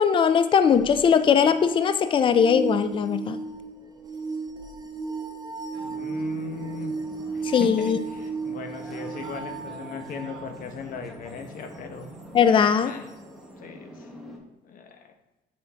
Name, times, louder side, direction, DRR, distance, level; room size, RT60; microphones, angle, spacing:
voice 1, 0.0-3.4 7.4-8.0 12.3-12.9, left 7 dB, 30° left, 11 dB, 0.4 m, -20 dB
sound 1, 0.7-10.5 12.8-12.9, right 4 dB, 20° right, 0.7 m, -35 dB
sound 2, 5.7-14.4, equal, ahead, 1.3 m, -45 dB
voice 2, 5.8-6.9 7.3-12.1 12.8-13.1 13.6-14.1 14.6-15.1, left 5 dB, 55° left, 5 dB, 0.9 m, -38 dB
5.6 x 5.2 x 3.5 m, 1.0 s
cardioid pair, 110°, 17 cm